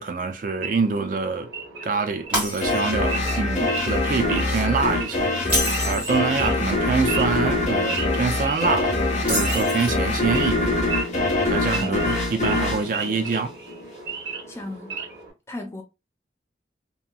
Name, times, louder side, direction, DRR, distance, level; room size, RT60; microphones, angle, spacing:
voice 1, 0.0-1.5 1.8-9.0 9.3-10.8 11.5-13.5, right 4 dB, 50° right, 0.4 m, -26 dB
Wild animals / Idling, 0.6-15.3, right 5 dB, 80° right, 1.1 m, -36 dB
Shatter, 2.3-3.1 3.5-3.8 5.4-6.2 9.2-10.1, equal, 10° right, 1.4 m, -27 dB
sound 1, 2.6-13.9, left 2 dB, 40° left, 0.8 m, -24 dB
voice 2, 11.7-12.2 14.5-15.0 15.5-15.8, left 1 dB, 15° left, 0.4 m, -35 dB
2.9 x 2.5 x 2.2 m
head